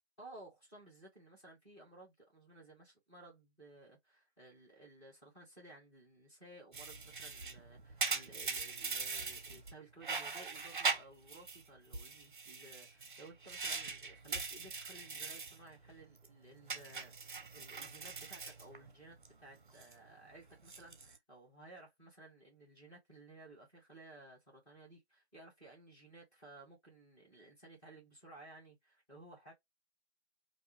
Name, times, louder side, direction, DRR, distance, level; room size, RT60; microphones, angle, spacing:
voice 1, 0.2-29.5, right 2 dB, 5° left, 0.7 m, -57 dB
sound 1, 6.7-9.7 10.0-11.6 11.9-15.6 15.9-16.3 16.7-19.3 19.6-19.9 20.5-21.2, right 4 dB, 50° right, 0.6 m, -41 dB
2.5 x 2.3 x 2.9 m
figure-of-eight pair, 145°, 33 cm